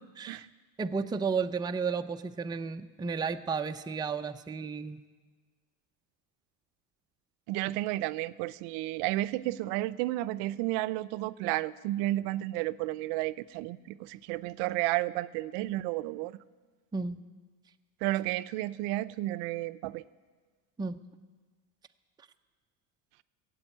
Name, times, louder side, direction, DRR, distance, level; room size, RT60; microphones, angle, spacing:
voice 1, 0.2-0.5 0.8-5.0 16.9-17.2 20.8-21.0, right 5 dB, 10° right, 6 dB, 0.5 m, -33 dB
voice 2, 7.5-16.4 18.0-20.0, right 17 dB, 75° right, 15 dB, 0.5 m, -32 dB
14.5 x 8.1 x 8.9 m, 1.5 s
supercardioid pair, 100°, 42 cm